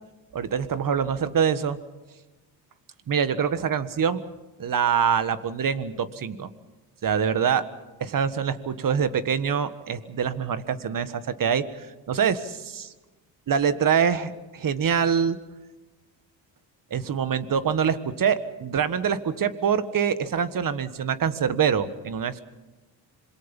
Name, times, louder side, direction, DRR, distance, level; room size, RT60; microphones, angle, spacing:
voice 1, 0.3-1.8 3.1-4.2 4.6-6.5 7.0-7.7 8.0-12.9 13.5-15.4 16.9-22.4, right 7 dB, 45° right, 13 dB, 1.6 m, -25 dB
26.5 x 22.5 x 5.4 m, 1.1 s
cardioid pair, 85°, 45 cm